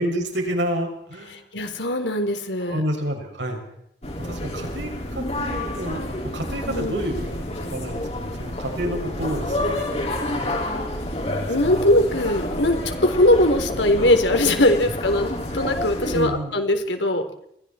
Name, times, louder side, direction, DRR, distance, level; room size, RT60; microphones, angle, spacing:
voice 1, 0.0-1.4 2.6-3.6 4.2-6.0 6.3-10.6 11.3-11.9 16.1-16.6, equal, 85° right, 2 dB, 6.6 m, -29 dB
voice 2, 1.3-2.8 6.7-7.1 11.5-17.2, left 1 dB, 85° left, 6 dB, 3.9 m, -21 dB
sound 1, 4.0-16.2, left 1 dB, 35° left, 5.2 m, -29 dB
29.5 x 23.5 x 4.5 m, 0.75 s
head